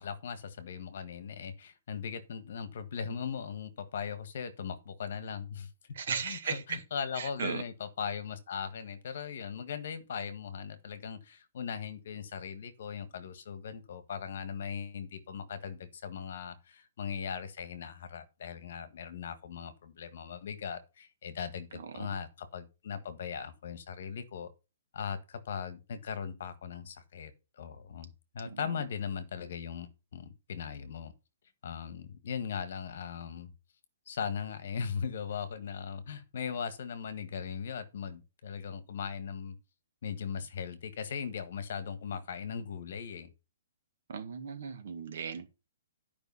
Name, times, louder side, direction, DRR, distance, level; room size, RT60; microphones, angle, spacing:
voice 1, 0.0-5.7 6.2-24.5 24.9-27.3 27.6-31.1 31.6-33.5 34.1-39.6 40.0-43.3, left 7 dB, 45° left, 1.5 m, -39 dB
voice 2, 5.9-6.8 7.1-7.6 21.7-22.2 28.4-28.7 44.1-45.5, right 6 dB, 50° right, 1.7 m, -37 dB
10.0 x 5.3 x 5.5 m
hypercardioid pair, 180°, 0 cm